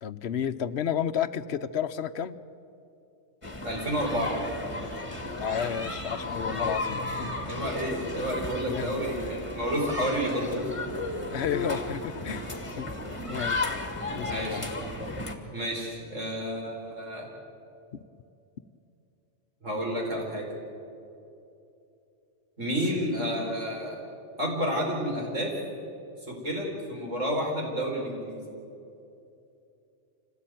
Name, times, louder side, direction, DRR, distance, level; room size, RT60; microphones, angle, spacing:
voice 1, 0.0-2.4 5.4-7.4 8.7-9.1 11.3-12.5 12.8-12.9 13.3-13.8 14.1-14.6, left 8 dB, 60° left, 13 dB, 1.0 m, -32 dB
sound 1, 3.4-15.4, left 2 dB, 25° left, 2.2 m, -34 dB
voice 2, 3.6-4.3 7.5-10.8 14.3-14.7 15.5-17.3 19.6-20.4 22.6-24.0 24.4-25.5 26.3-28.4, equal, 85° right, -1 dB, 5.0 m, -30 dB
26.5 x 17.5 x 9.2 m, 2.7 s
omnidirectional pair, 1.3 m